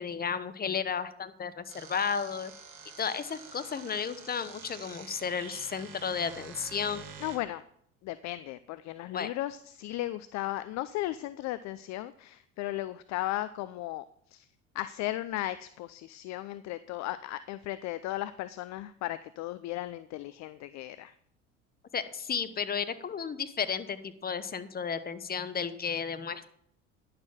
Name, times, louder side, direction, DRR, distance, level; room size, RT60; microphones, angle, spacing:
voice 1, 0.0-2.5 3.0-7.1 9.1-9.3 21.9-26.5, left 6 dB, 25° left, 14 dB, 1.0 m, -33 dB
sound 1, 1.7-7.4, right 7 dB, 60° right, 2.3 m, -48 dB
voice 2, 7.2-7.6 8.0-14.5 14.7-21.1, left 15 dB, 45° left, 14 dB, 0.5 m, -36 dB
10.5 x 6.7 x 5.8 m, 0.67 s
hypercardioid pair, 70°, 38 cm